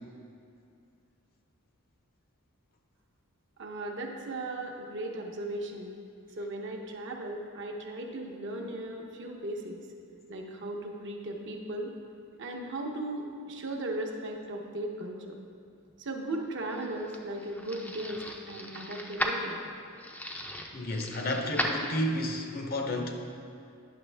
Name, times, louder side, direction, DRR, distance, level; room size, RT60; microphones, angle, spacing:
voice 1, 3.6-6.0 6.3-9.9 10.3-12.0 12.4-15.4 16.0-19.6, right 1 dB, 55° right, 1 dB, 0.8 m, -37 dB
sound 1, 16.4-22.4, equal, 5° left, 0.4 m, -36 dB
voice 2, 20.7-23.2, left 1 dB, 45° left, 3 dB, 0.7 m, -31 dB
9.3 x 6.2 x 3.3 m, 2.4 s
head